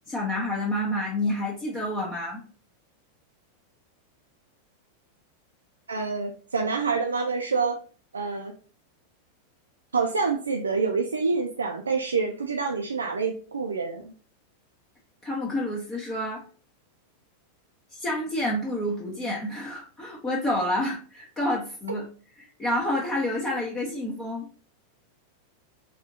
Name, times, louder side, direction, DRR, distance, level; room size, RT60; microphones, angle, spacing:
voice 1, 0.1-2.4 15.2-16.4 17.9-22.1 22.4-24.5, left 1 dB, 20° left, -3 dB, 0.7 m, -29 dB
voice 2, 5.9-7.8 8.1-8.5 9.9-14.1, right 4 dB, 75° right, 2 dB, 0.3 m, -27 dB
3.6 x 2.4 x 2.5 m, 0.39 s
figure-of-eight pair, 90°, 0 cm